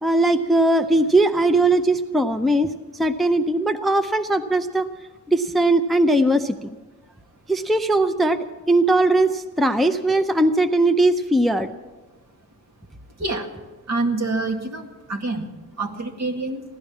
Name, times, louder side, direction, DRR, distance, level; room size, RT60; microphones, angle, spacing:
voice 1, 0.0-2.7 3.0-4.9 5.3-6.7 7.5-8.4 8.7-11.7, right 2 dB, ahead, 9 dB, 0.5 m, -19 dB
voice 2, 13.9-15.5 15.8-16.6, right 2 dB, 60° right, 2 dB, 2.1 m, -26 dB
16.0 x 12.0 x 7.2 m, 1.2 s
wide cardioid pair, 150°, 31 cm